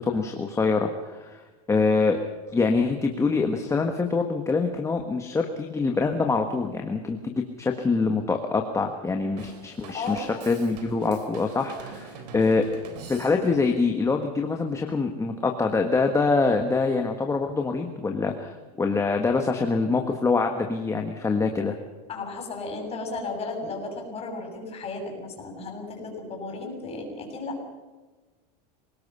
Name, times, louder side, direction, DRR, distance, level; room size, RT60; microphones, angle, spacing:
voice 1, 0.0-1.4 1.7-2.2 2.5-12.6 13.1-21.7, left 4 dB, 15° left, 4 dB, 1.5 m, -25 dB
Drum kit / Drum, 9.4-13.7, right 5 dB, 85° right, 3.5 m, -43 dB
voice 2, 9.9-10.5 22.1-27.6, left 3 dB, 30° left, 2 dB, 6.9 m, -34 dB
26.0 x 18.5 x 5.6 m, 1.3 s
supercardioid pair, 130°, 21 cm